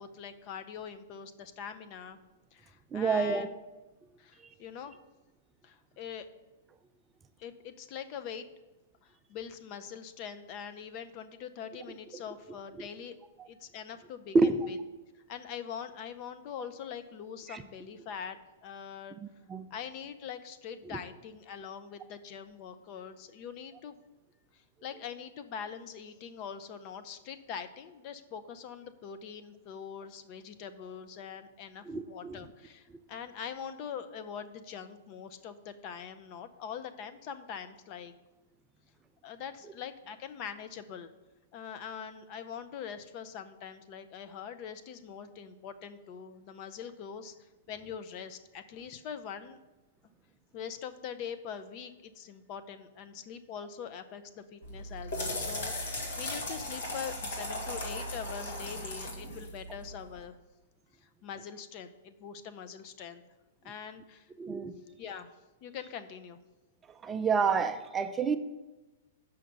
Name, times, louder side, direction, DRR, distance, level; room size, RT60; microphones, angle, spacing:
voice 1, 0.0-2.2 2.5-3.5 4.2-5.0 5.6-6.3 7.4-8.5 9.0-13.1 13.5-14.4 14.7-14.8 15.3-19.2 19.7-24.0 24.8-38.1 39.2-41.1 41.5-47.3 47.7-49.6 50.5-60.3 61.0-63.2 63.6-64.3 65.0-65.3 65.6-66.4, left 7 dB, 40° left, 10 dB, 0.5 m, -43 dB
voice 2, 2.9-3.5 14.3-14.7 17.5-17.6 19.5-19.7 31.9-32.4 64.4-64.7 67.0-68.4, right 4 dB, 15° right, 9 dB, 0.4 m, -28 dB
sound 1, 54.6-60.2, left 1 dB, 75° left, 1.9 m, -37 dB
5.7 x 5.0 x 6.6 m, 1.1 s
hypercardioid pair, 140°, 0 cm